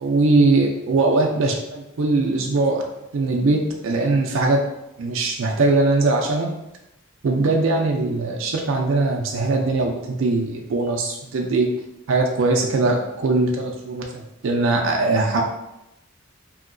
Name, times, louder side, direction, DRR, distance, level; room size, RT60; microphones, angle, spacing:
voice 1, 0.0-2.8 3.1-4.6 5.0-6.5 7.2-11.7 12.1-15.4, right 3 dB, 70° right, 1 dB, 0.4 m, -21 dB
2.9 x 2.8 x 2.5 m, 0.89 s
head